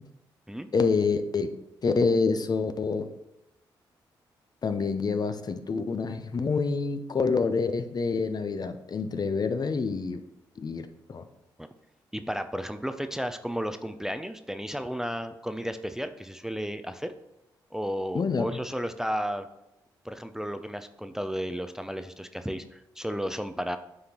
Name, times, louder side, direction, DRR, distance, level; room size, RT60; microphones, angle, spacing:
voice 1, 0.7-1.6 1.8-3.1 4.6-10.2 10.6-11.2 18.1-18.6, left 4 dB, 45° left, 9 dB, 0.6 m, -27 dB
voice 2, 12.1-17.1 17.7-19.5 20.0-23.8, equal, 5° right, 9 dB, 0.4 m, -33 dB
9.7 x 3.6 x 2.9 m, 0.88 s
supercardioid pair, 45°, 9 cm